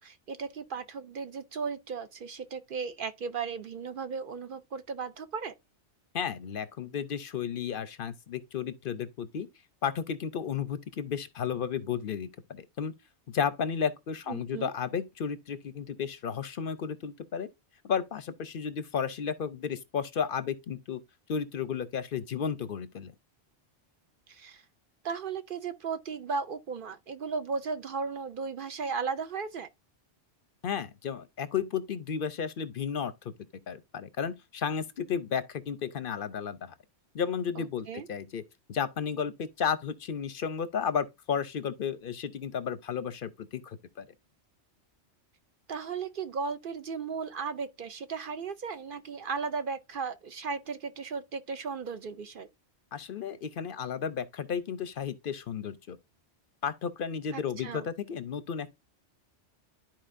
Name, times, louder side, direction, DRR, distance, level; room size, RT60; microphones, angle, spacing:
voice 1, 0.0-5.5 14.3-14.7 24.3-24.6 25.0-29.7 37.6-38.1 45.7-52.5 57.3-57.9, right 5 dB, 55° right, 0.7 m, -36 dB
voice 2, 6.1-9.5 9.8-12.9 13.3-17.5 17.8-21.0 21.3-23.1 30.6-33.3 33.7-36.7 37.1-38.4 38.7-44.0 52.9-56.0 56.6-58.8, left 7 dB, 60° left, 0.7 m, -33 dB
12.5 x 4.4 x 2.5 m
omnidirectional pair, 1.2 m